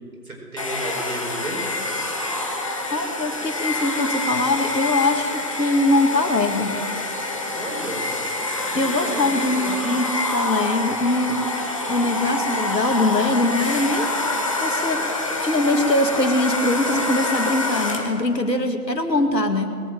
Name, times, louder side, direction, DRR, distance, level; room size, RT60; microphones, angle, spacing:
voice 1, 0.2-1.6 7.5-8.1 8.7-9.8, right 1 dB, 55° right, 0 dB, 4.6 m, -33 dB
Domestic sounds home sounds, 0.6-18.2, left 2 dB, 20° left, 1.0 m, -26 dB
voice 2, 2.9-5.3 5.6-6.8 8.7-11.4 11.9-14.1 14.6-19.8, left 2 dB, 80° left, 6 dB, 2.1 m, -22 dB
21.0 x 7.5 x 7.7 m, 2.1 s
figure-of-eight pair, 155°, 49 cm